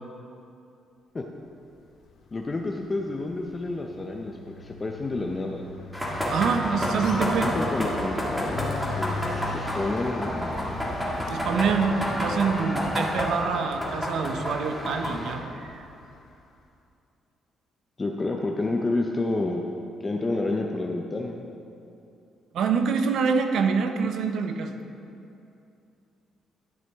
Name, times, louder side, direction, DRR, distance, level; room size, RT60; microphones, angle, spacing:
voice 1, 2.3-5.6 7.4-11.0 18.0-19.6 20.0-21.4, left 2 dB, 25° left, 2 dB, 0.6 m, -30 dB
sound 1, 2.4-2.7 3.0-16.1, left 4 dB, 65° left, 0.8 m, -40 dB
sound 2, 5.9-15.3, equal, 5° right, 1.8 m, -30 dB
voice 2, 6.3-7.5 11.3-15.8 22.5-24.8, right 5 dB, 75° right, 6 dB, 0.6 m, -26 dB
12.0 x 6.0 x 3.5 m, 2.7 s
cardioid pair, 90°, 0 cm